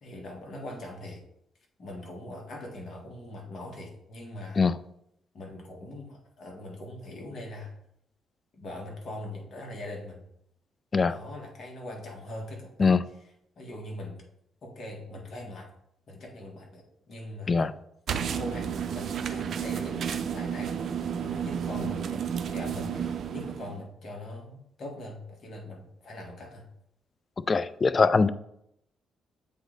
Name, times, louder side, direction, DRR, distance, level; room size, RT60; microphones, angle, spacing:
voice 1, 0.0-1.2 1.8-4.6 5.3-7.7 8.5-10.2 11.0-12.9 13.6-14.2 14.6-15.7 16.1-17.7 18.2-26.6, left 1 dB, 55° left, 1.6 m, -41 dB
sound 1, 18.1-23.8, right 8 dB, 60° right, 0.5 m, -32 dB
voice 2, 27.5-28.3, left 4 dB, 35° left, 0.3 m, -22 dB
7.7 x 3.1 x 3.9 m
cardioid pair, 90°, 0 cm